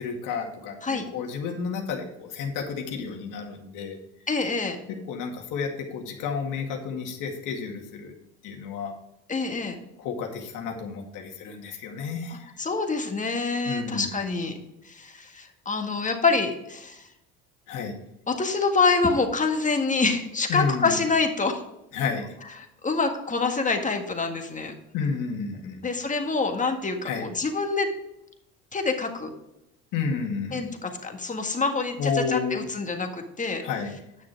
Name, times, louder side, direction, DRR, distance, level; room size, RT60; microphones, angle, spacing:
voice 1, 0.0-4.0 5.1-8.1 8.4-8.9 10.0-12.5 13.7-14.2 17.7-17.9 20.5-21.0 21.9-22.3 24.9-25.8 27.0-27.3 29.9-30.7 32.0-32.6 33.6-34.0, left 5 dB, 70° left, 2 dB, 2.1 m, -31 dB
voice 2, 4.3-4.8 9.3-9.8 12.3-14.6 14.9-17.0 18.3-21.6 22.8-24.7 25.8-27.9 28.7-29.3 30.5-33.6, left 4 dB, 20° left, 4 dB, 1.8 m, -26 dB
9.7 x 6.5 x 4.6 m, 0.88 s
supercardioid pair, 80°, 34 cm